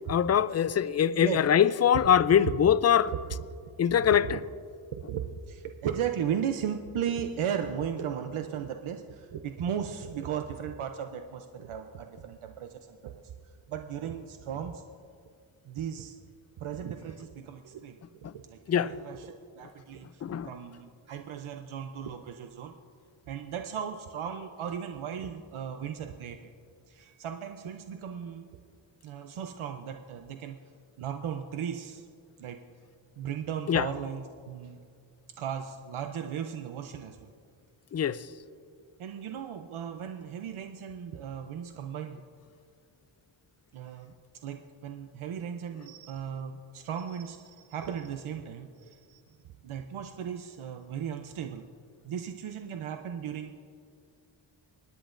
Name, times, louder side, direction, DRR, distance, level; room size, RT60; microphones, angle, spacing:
voice 1, 0.1-3.1 3.8-4.4 18.7-18.9 20.2-20.5 33.7-33.9 37.9-38.2, left 9 dB, 35° left, 0.4 m, -23 dB
voice 2, 1.1-1.5 2.5-2.6 3.1-3.3 4.0-4.4 4.9-13.2 13.7-14.8 15.7-16.2 16.6-18.0 18.3-22.7 23.3-26.5 26.9-28.5 29.0-30.6 31.0-32.1 32.4-32.6 33.2-34.8 35.4-37.3 39.0-42.2 43.7-44.1 44.4-49.2 49.6-51.6 52.0-53.6, right 8 dB, 90° right, 0.7 m, -36 dB
27.5 x 10.0 x 2.6 m
cardioid pair, 70°, 48 cm